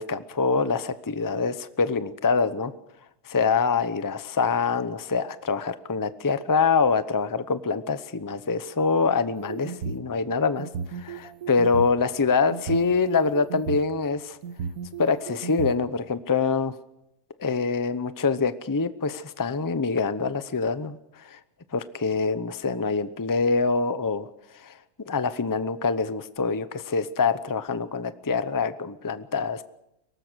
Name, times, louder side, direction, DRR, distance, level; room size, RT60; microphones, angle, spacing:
voice 1, 0.0-2.7 3.2-14.4 15.0-16.7 17.4-21.4 21.7-24.3 24.5-24.7 25.1-29.6, left 4 dB, 20° left, 13 dB, 0.6 m, -25 dB
sound 1, 9.4-10.0 10.6-12.0 12.5-13.8 14.4-15.7, right 6 dB, 80° right, 1.6 m, -34 dB
23.5 x 18.5 x 6.3 m, 0.82 s
omnidirectional pair, 1.6 m